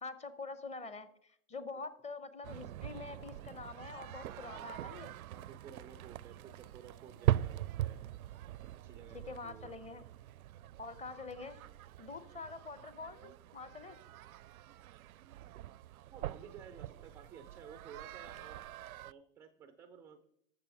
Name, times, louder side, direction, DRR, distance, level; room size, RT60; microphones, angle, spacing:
voice 1, 0.0-5.2 9.1-10.0 10.8-11.6 12.0-14.0, left 4 dB, 15° left, 13 dB, 0.8 m, -46 dB
sound 1, 2.4-19.1, right 13 dB, 80° right, 0.5 m, -41 dB
voice 2, 4.2-4.7 5.3-8.1 8.8-9.7 16.1-20.2, right 7 dB, 5° right, 9 dB, 0.3 m, -54 dB
13.0 x 6.9 x 5.7 m, 0.72 s
hypercardioid pair, 110°, 43 cm